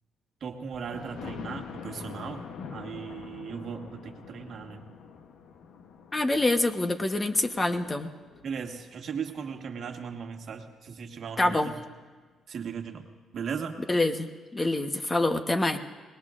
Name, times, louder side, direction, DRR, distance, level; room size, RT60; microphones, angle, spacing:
voice 1, 0.4-4.9 8.4-11.8 12.5-13.1 13.3-13.8, right 6 dB, 60° right, 4 dB, 1.4 m, -37 dB
Thunder, 0.7-10.5 11.0-11.1 11.5-11.6 11.9-12.0, left 6 dB, 75° left, 0.9 m, -45 dB
voice 2, 6.1-8.1 11.4-11.7 13.9-15.8, left 2 dB, 25° left, 7 dB, 1.0 m, -26 dB
25.0 x 20.0 x 2.5 m, 1.4 s
cardioid pair, 90°, 0 cm